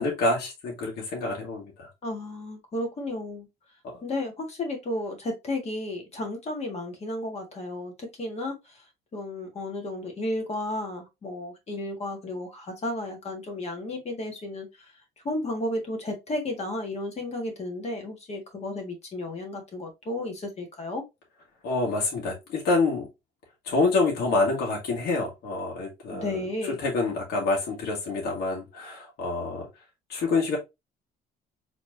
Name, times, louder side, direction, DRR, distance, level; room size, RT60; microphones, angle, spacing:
voice 1, 0.0-1.9 3.9-4.0 21.6-23.1 23.7-26.3 26.8-29.7 30.1-30.6, left 3 dB, 70° left, 1.7 m, -27 dB
voice 2, 2.0-3.5 4.0-8.8 9.1-14.9 15.2-21.0 26.1-26.8, left 1 dB, 40° left, 1.5 m, -33 dB
4.2 x 3.1 x 2.7 m
cardioid pair, 110°, 17 cm